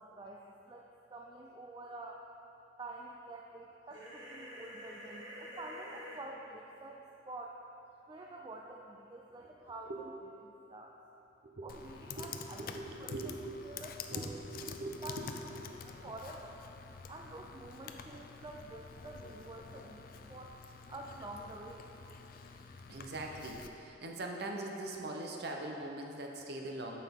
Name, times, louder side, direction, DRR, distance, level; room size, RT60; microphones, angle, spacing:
voice 1, 0.0-2.2 2.8-7.6 8.1-9.9 10.4-11.0 11.6-12.7 13.0-13.2 13.6-14.4 15.0-15.2 15.4-15.5 16.0-16.6 17.1-20.5 20.9-21.8, right 2 dB, 25° right, 0 dB, 0.4 m, -48 dB
sound 1, 3.9-6.2, equal, 85° right, 1.4 m, -48 dB
Computer keyboard, 11.7-23.7, left 5 dB, 50° left, 0.4 m, -48 dB
voice 2, 12.1-13.8 14.1-15.3 15.5-15.6 22.9-27.0, right 2 dB, 55° right, 1 dB, 0.7 m, -42 dB
9.3 x 6.6 x 3.6 m, 2.9 s
head